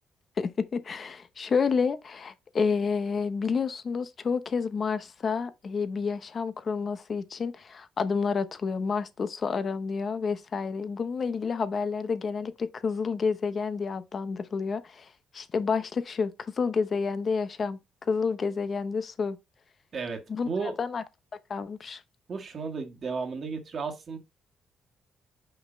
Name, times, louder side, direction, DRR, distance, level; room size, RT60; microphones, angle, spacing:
voice 1, 0.4-17.8 18.1-19.4 20.3-21.0 21.5-22.0, left 5 dB, 45° left, 0.9 m, -29 dB
voice 2, 19.9-20.7 22.3-24.2, right 5 dB, 45° right, 1.8 m, -34 dB
5.8 x 5.4 x 4.0 m
cardioid pair, 90°, 0 cm